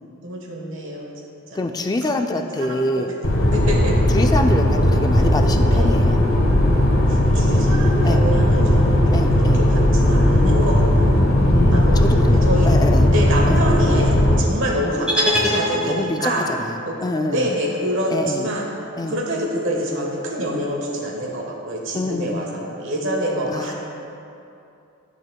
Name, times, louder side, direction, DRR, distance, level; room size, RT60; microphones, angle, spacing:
voice 1, 0.2-1.1 1.5-1.6 2.3-3.0 3.5-4.0 5.7-5.9 7.1-12.0 12.4-12.8 13.1-16.5 16.8-18.6 19.1-23.7, equal, 60° right, -1 dB, 1.3 m, -26 dB
voice 2, 1.5-3.1 4.1-6.2 8.0-8.2 9.1-9.6 11.4-13.1 13.5-13.6 15.8-16.3 16.6-17.5 18.1-18.5 19.0-19.2 20.5-20.7 21.9-22.4 23.5-23.7, left 2 dB, 15° left, 6 dB, 0.3 m, -25 dB
sound 1, 3.2-14.4, left 1 dB, 80° left, 1.1 m, -16 dB
sound 2, 15.1-16.4, equal, 5° right, 1.1 m, -22 dB
13.0 x 6.3 x 2.2 m, 2.7 s
head